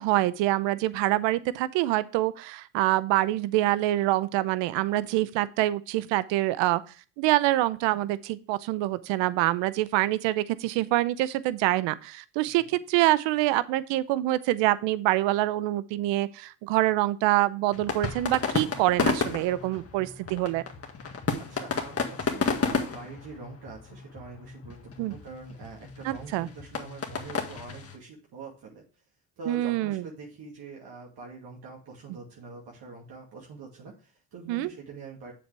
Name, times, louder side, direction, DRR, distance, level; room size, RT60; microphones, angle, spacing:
voice 1, 0.0-6.8 7.2-20.6 25.0-25.1 26.0-26.5 29.5-30.0 34.5-34.7, right 16 dB, 75° right, 17 dB, 0.8 m, -25 dB
sound 1, 17.7-27.9, left 4 dB, 30° left, 1.9 m, -32 dB
voice 2, 21.5-28.8 29.4-35.3, right 4 dB, 55° right, -2 dB, 2.4 m, -44 dB
7.5 x 7.2 x 3.4 m, 0.38 s
supercardioid pair, 80°, 45 cm